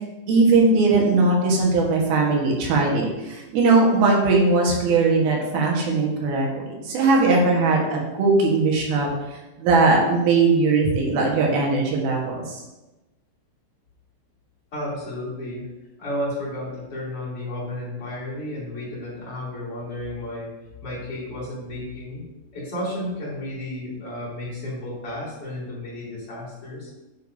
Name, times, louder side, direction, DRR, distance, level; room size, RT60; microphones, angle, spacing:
voice 1, 0.3-9.1 9.6-12.6, right 3 dB, 85° right, -2 dB, 3.3 m, -19 dB
voice 2, 14.7-15.7 16.0-20.5 20.8-22.2 22.5-26.9, left 1 dB, 40° left, -9 dB, 3.7 m, -32 dB
10.0 x 6.6 x 2.7 m, 1.0 s
omnidirectional pair, 4.2 m